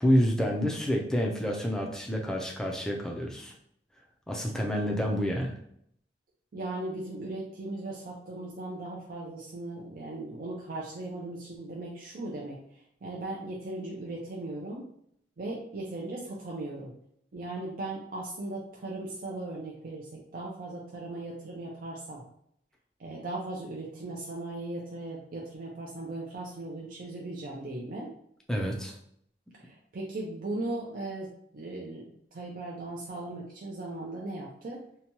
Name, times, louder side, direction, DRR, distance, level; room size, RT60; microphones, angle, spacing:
voice 1, 0.0-3.5 4.3-5.6 28.5-28.9, equal, 5° left, -1 dB, 0.4 m, -28 dB
voice 2, 6.5-14.8 15.4-16.9 17.3-22.2 23.0-28.1 29.6-34.8, right 2 dB, 50° right, -3 dB, 0.5 m, -38 dB
2.8 x 2.2 x 2.9 m, 0.69 s
head